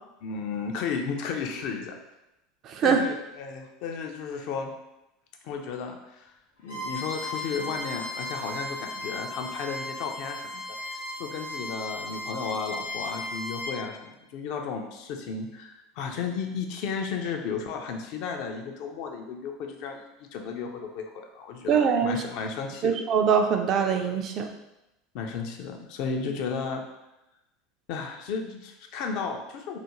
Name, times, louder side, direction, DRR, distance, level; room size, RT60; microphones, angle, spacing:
voice 1, 0.2-2.0 2.8-4.7 5.4-6.3 6.6-10.6 10.9-23.0 25.1-26.8 27.9-29.8, left 5 dB, 55° left, 3 dB, 0.3 m, -34 dB
voice 2, 2.7-3.0 21.7-22.2 22.8-24.5, right 7 dB, 45° right, 4 dB, 0.3 m, -23 dB
Bowed string instrument, 6.6-13.7, left 1 dB, 75° left, 0.9 m, -36 dB
2.4 x 2.1 x 2.9 m, 0.93 s
figure-of-eight pair, 75°, 0 cm